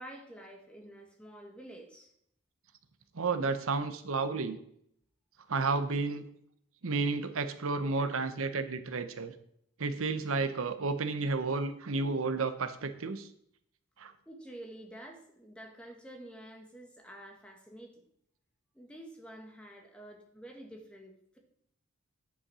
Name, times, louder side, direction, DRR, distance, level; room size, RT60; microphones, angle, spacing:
voice 1, 0.0-2.1 3.6-3.7 14.2-18.0 18.7-21.4, right 1 dB, 5° left, 1 dB, 1.7 m, -49 dB
voice 2, 3.1-4.6 5.5-6.2 6.8-9.3 9.8-13.3 14.0-14.1, right 4 dB, 70° right, 10 dB, 0.8 m, -31 dB
9.9 x 5.9 x 6.1 m, 0.69 s
head